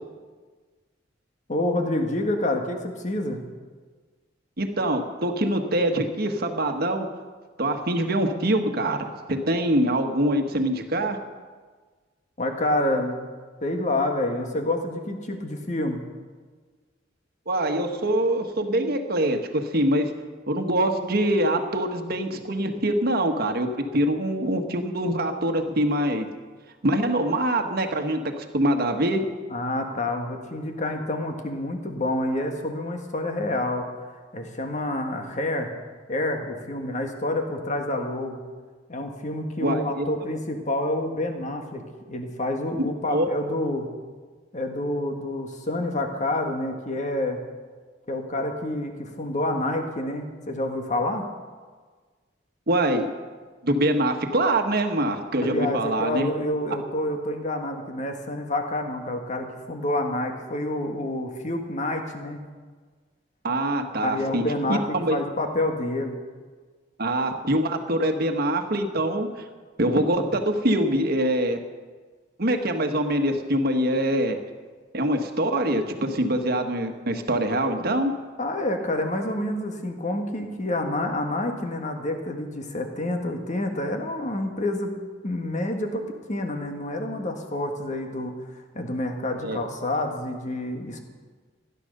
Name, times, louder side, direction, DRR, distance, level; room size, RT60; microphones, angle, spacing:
voice 1, 1.5-3.4 12.4-13.3 13.6-16.0 29.5-33.9 34.3-35.7 36.1-38.4 38.9-41.8 42.1-43.9 44.5-47.4 48.1-51.3 55.4-62.4 64.0-66.2 78.4-84.9 85.2-88.3 88.7-91.0, left 1 dB, 40° left, 4 dB, 1.8 m, -28 dB
voice 2, 4.6-7.1 7.6-11.2 17.5-20.1 20.5-26.3 26.8-29.3 39.6-40.1 43.1-43.3 52.7-53.1 53.6-56.3 63.4-64.4 64.7-65.2 67.0-69.3 69.8-71.6 72.4-74.4 74.9-78.2 89.4-89.6, right 1 dB, 55° right, 5 dB, 1.4 m, -24 dB
16.0 x 11.0 x 6.7 m, 1.4 s
head